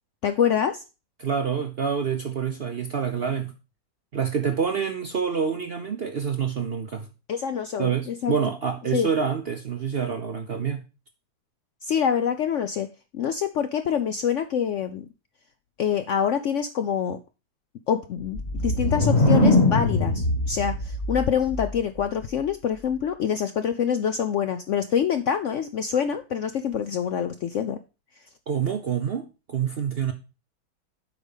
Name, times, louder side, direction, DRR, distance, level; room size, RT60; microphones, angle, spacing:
voice 1, 0.2-0.8 7.3-8.3 8.9-9.1 11.8-12.9 13.1-15.1 15.8-17.2 17.9-27.8, left 8 dB, 70° left, 0.7 m, -26 dB
voice 2, 1.2-3.5 4.1-7.1 7.8-10.9 28.5-30.1, right 7 dB, 55° right, 0.7 m, -27 dB
sound 1, 18.2-22.1, left 1 dB, 40° left, 2.0 m, -22 dB
8.0 x 5.0 x 5.4 m
omnidirectional pair, 1.8 m